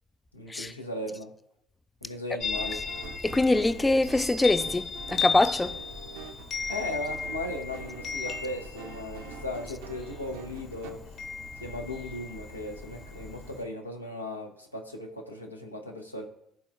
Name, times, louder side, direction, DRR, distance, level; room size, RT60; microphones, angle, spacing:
voice 1, 0.3-1.3 2.0-2.8 6.7-11.0 11.6-16.3, left 1 dB, 90° left, 0.7 m, -37 dB
Chime, 2.4-13.6, left 5 dB, 50° left, 1.3 m, -36 dB
sound 1, 2.5-10.9, right 8 dB, 65° right, 0.7 m, -46 dB
voice 2, 3.2-5.8, left 2 dB, 15° left, 0.3 m, -24 dB
12.5 x 4.2 x 2.4 m
figure-of-eight pair, 55°, 0 cm